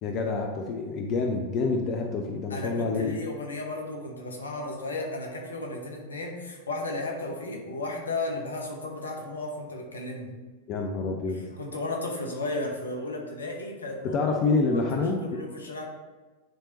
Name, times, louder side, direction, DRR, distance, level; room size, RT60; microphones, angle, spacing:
voice 1, 0.0-3.1 10.7-11.4 14.0-15.5, left 3 dB, 40° left, 3 dB, 0.6 m, -27 dB
voice 2, 2.5-10.4 11.3-14.2 14.7-15.8, left 2 dB, 70° left, 1 dB, 1.0 m, -34 dB
9.7 x 3.4 x 2.9 m, 1.3 s
figure-of-eight pair, 90°, 0 cm